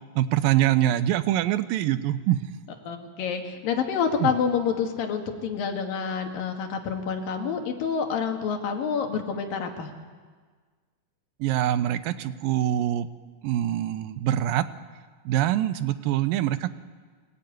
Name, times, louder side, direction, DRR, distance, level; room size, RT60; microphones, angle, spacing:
voice 1, 0.2-2.4 4.2-4.3 11.4-13.1 13.4-14.7 15.3-16.7, right 12 dB, 90° right, 13 dB, 2.6 m, -24 dB
voice 2, 2.8-9.9, left 6 dB, 90° left, 4 dB, 3.7 m, -28 dB
23.0 x 19.0 x 9.4 m, 1.5 s
omnidirectional pair, 3.9 m